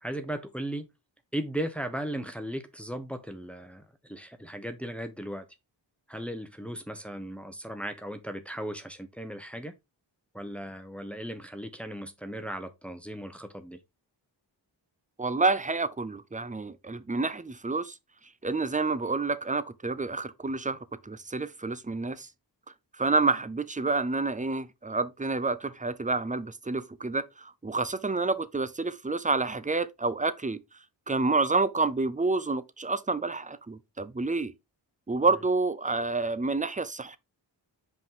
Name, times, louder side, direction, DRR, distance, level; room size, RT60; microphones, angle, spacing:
voice 1, 0.0-0.9 1.3-3.8 4.1-5.5 6.1-9.7 10.3-13.8, right 1 dB, 5° left, 1.2 m, -36 dB
voice 2, 15.2-17.9 18.4-20.8 21.0-22.3 23.0-30.6 31.1-34.5 35.1-37.2, right 3 dB, 15° right, 0.7 m, -28 dB
5.3 x 5.3 x 3.9 m
wide cardioid pair, 60°, 45 cm